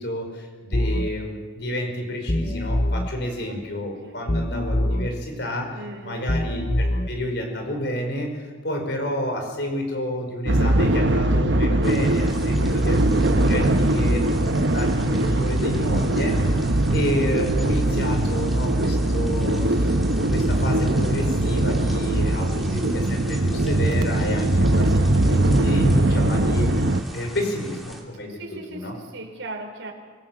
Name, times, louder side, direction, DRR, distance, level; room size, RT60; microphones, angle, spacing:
voice 1, 0.0-14.2 14.5-16.6 16.9-20.0 20.3-26.7 27.1-28.4 28.7-29.0, left 1 dB, 60° left, 4 dB, 5.1 m, -30 dB
sound 1, 0.7-1.1 2.3-3.1 4.3-5.1 6.3-7.1, left 1 dB, 40° left, 0.9 m, -23 dB
voice 2, 5.7-6.3 13.4-14.4 28.3-29.9, right 1 dB, 90° right, 1 dB, 4.4 m, -38 dB
sound 2, 10.5-27.0, right 1 dB, 65° right, 1.1 m, -21 dB
sound 3, 11.8-28.0, right 1 dB, ahead, 2.8 m, -42 dB
25.5 x 19.0 x 7.5 m, 1.5 s
head